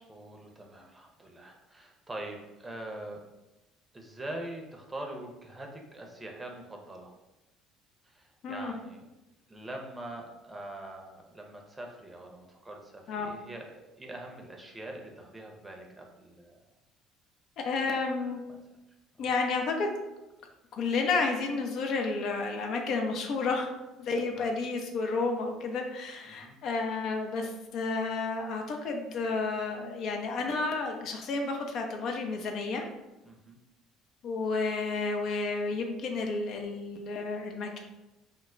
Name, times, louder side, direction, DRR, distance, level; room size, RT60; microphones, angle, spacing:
voice 1, 0.1-3.2 3.9-7.1 8.0-9.0 9.5-16.7 19.2-19.3 24.3-24.5 26.2-26.6 33.2-33.6, right 1 dB, 20° right, 1 dB, 0.6 m, -43 dB
voice 2, 17.6-18.4 19.2-19.9 20.8-23.7 24.0-32.8 34.2-37.8, left 3 dB, 60° left, 3 dB, 0.4 m, -31 dB
2.1 x 2.0 x 3.6 m, 1.0 s
hypercardioid pair, 60°, 0 cm